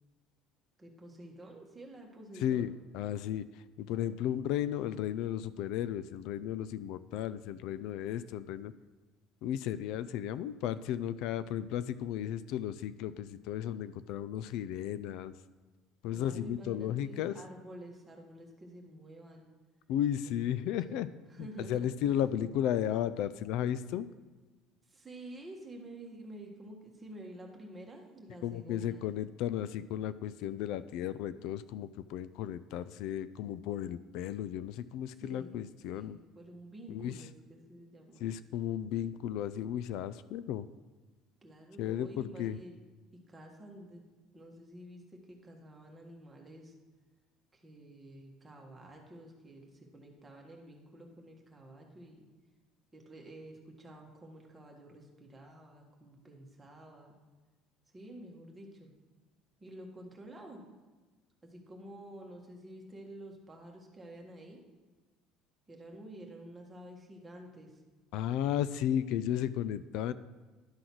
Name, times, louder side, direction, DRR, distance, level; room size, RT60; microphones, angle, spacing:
voice 1, 0.8-2.7 16.1-19.5 20.2-22.2 24.9-29.1 35.1-35.6 35.9-38.3 41.4-42.7 43.3-44.0 44.3-46.7 47.5-52.3 52.9-57.2 57.9-58.9 59.6-60.6 61.4-64.6 65.7-67.8, right 1 dB, 10° right, 0 dB, 1.5 m, -50 dB
voice 2, 2.4-3.5 3.8-8.7 9.4-15.3 16.0-17.3 19.9-21.1 21.4-24.1 28.4-36.2 36.9-37.1 38.2-40.7 41.8-42.6 68.1-70.1, left 10 dB, 70° left, 15 dB, 0.3 m, -34 dB
11.5 x 3.9 x 6.0 m, 1.3 s
cardioid pair, 140°, 0 cm